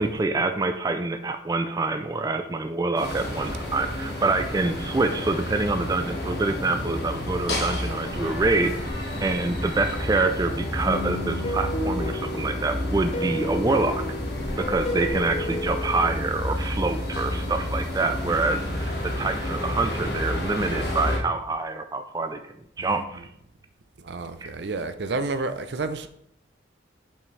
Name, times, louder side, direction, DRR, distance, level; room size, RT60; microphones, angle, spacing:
voice 1, 0.0-8.7 9.2-14.0 14.7-23.3 24.4-24.5, right 3 dB, 20° right, 0.3 m, -26 dB
sound 1, 2.9-21.2, left 1 dB, 60° left, 1.6 m, -30 dB
sound 2, 10.8-16.1, left 1 dB, 35° left, 0.8 m, -32 dB
voice 2, 24.0-26.1, right 3 dB, 70° right, 0.5 m, -30 dB
6.9 x 5.7 x 3.2 m
head